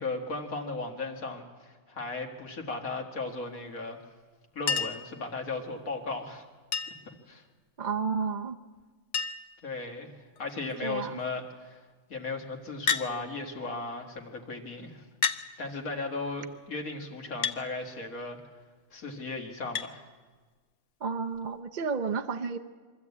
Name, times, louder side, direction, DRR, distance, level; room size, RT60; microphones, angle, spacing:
voice 1, 0.0-4.0 4.5-6.4 7.3-7.4 9.6-11.8 12.1-15.1 15.6-18.4 18.9-20.1, left 3 dB, 80° left, 2 dB, 2.3 m, -36 dB
Chink clink, 4.7-5.1 6.7-7.1 8.5-8.6 8.8-8.9 9.1-9.6 10.4-10.7 12.9-13.1 14.2-14.3 15.2-15.5 17.4-17.6 19.8-19.9 21.3-21.4, left 6 dB, 65° left, 1.1 m, -30 dB
voice 2, 7.8-8.6 10.8-11.2 21.0-22.6, right 5 dB, 40° right, 5 dB, 0.7 m, -31 dB
24.0 x 13.5 x 8.4 m, 1.4 s
omnidirectional pair, 1.5 m